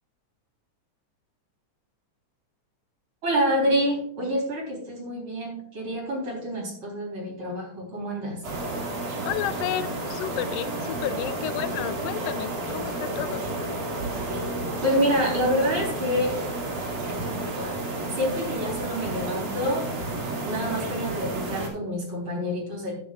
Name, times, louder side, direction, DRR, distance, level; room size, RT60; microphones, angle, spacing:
voice 1, 3.2-8.4 14.8-16.4 17.2-19.9 20.4-23.0, equal, 40° right, -1 dB, 4.4 m, -27 dB
sound 1, 8.4-21.7, right 2 dB, 80° right, 3.8 m, -31 dB
voice 2, 9.2-13.4, left 11 dB, 85° left, 11 dB, 2.1 m, -31 dB
12.5 x 10.0 x 2.4 m, 0.64 s
omnidirectional pair, 3.6 m